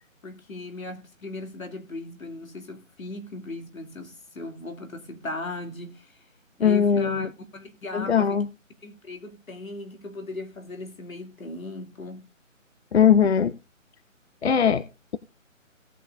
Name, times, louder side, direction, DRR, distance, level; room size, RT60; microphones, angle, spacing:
voice 1, 0.2-6.1 6.6-8.4 8.8-12.2, left 2 dB, 85° left, 2.6 m, -37 dB
voice 2, 6.6-7.3 7.9-8.5 12.9-13.5 14.4-14.8, left 7 dB, 55° left, 0.7 m, -20 dB
17.5 x 6.9 x 2.5 m
hypercardioid pair, 165°, 40 cm